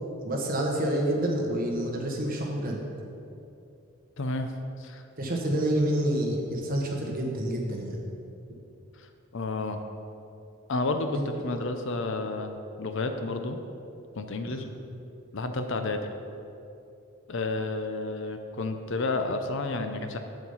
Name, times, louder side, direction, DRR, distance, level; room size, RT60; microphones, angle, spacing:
voice 1, 0.2-2.8 5.2-8.1 11.1-11.6 14.5-14.6, right 1 dB, 40° right, 0 dB, 1.3 m, -28 dB
voice 2, 4.2-4.5 4.8-5.0 9.0-9.8 10.7-13.6 14.1-14.7 15.3-16.1 17.3-20.2, left 3 dB, 55° left, 7 dB, 0.6 m, -31 dB
7.9 x 7.1 x 5.6 m, 2.7 s
head